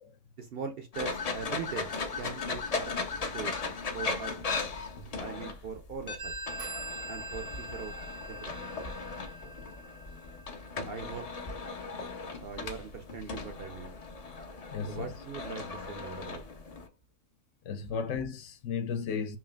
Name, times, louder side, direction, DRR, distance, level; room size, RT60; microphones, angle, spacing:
voice 1, 0.4-2.9 3.3-3.5 3.9-4.3 5.2-6.3 7.1-7.9 8.3-8.7 10.9-11.3 12.4-14.0 14.9-16.4, right 6 dB, 55° right, 0.7 m, -41 dB
sound 1, 0.9-16.9, left 4 dB, 45° left, 0.5 m, -37 dB
Telephone, 6.2-11.5, right 1 dB, 75° right, 1.3 m, -43 dB
voice 2, 14.7-15.1 17.6-19.4, left 6 dB, 70° left, 0.9 m, -35 dB
5.7 x 2.4 x 2.3 m
omnidirectional pair, 1.4 m